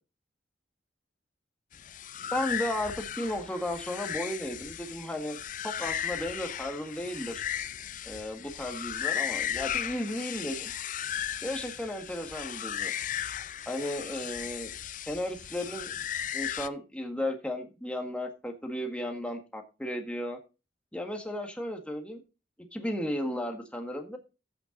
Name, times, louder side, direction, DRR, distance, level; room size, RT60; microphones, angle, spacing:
sound 1, 1.7-16.7, left 10 dB, 45° left, 0.5 m, -36 dB
voice 1, 2.3-5.4 5.6-7.4 8.0-10.7 11.4-12.9 13.6-14.7 15.1-15.9 16.3-20.4 20.9-22.2 22.7-24.2, left 1 dB, 5° left, 3 dB, 1.7 m, -34 dB
14.5 x 5.8 x 3.9 m, 0.30 s
head